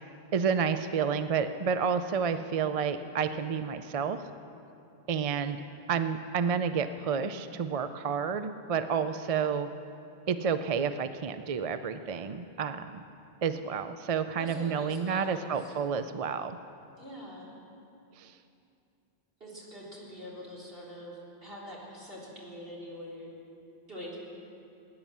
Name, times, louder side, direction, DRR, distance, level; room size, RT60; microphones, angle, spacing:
voice 1, 0.3-4.2 5.1-5.6 5.9-9.7 10.3-13.0 13.4-16.6 18.2-18.3, right 6 dB, 45° right, 10 dB, 0.5 m, -30 dB
voice 2, 14.4-15.8 17.0-17.6 19.4-23.3 23.9-24.2, equal, 65° right, -6 dB, 3.9 m, -44 dB
18.5 x 9.7 x 7.3 m, 2.7 s
omnidirectional pair, 1.0 m